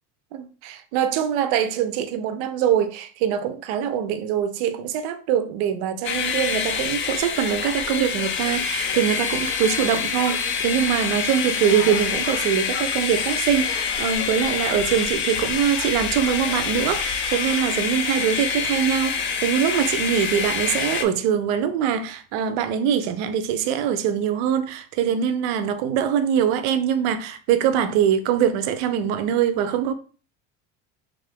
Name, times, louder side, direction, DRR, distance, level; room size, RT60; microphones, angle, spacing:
voice 1, 0.3-29.9, right 9 dB, 75° right, 0.6 m, -23 dB
sound 1, 6.0-21.0, left 6 dB, 35° left, 0.4 m, -26 dB
3.6 x 2.5 x 3.3 m
supercardioid pair, 125°, 35 cm